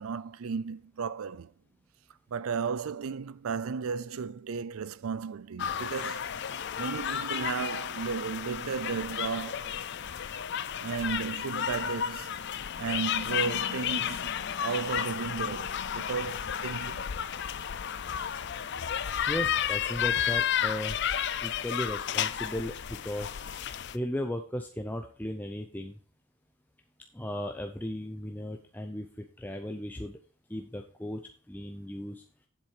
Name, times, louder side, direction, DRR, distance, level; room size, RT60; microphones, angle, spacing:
voice 1, 0.0-1.5 2.3-6.2 6.8-9.8 10.8-12.3 12.8-14.3 14.6-17.1, right 5 dB, 75° right, 0.4 m, -34 dB
sound 1, 5.6-24.0, left 9 dB, 50° left, 0.4 m, -32 dB
voice 2, 19.3-21.0 21.4-23.3 23.9-26.0 27.1-30.2 30.5-31.2 31.5-32.2, left 1 dB, 10° left, 0.6 m, -36 dB
7.7 x 7.4 x 4.8 m
head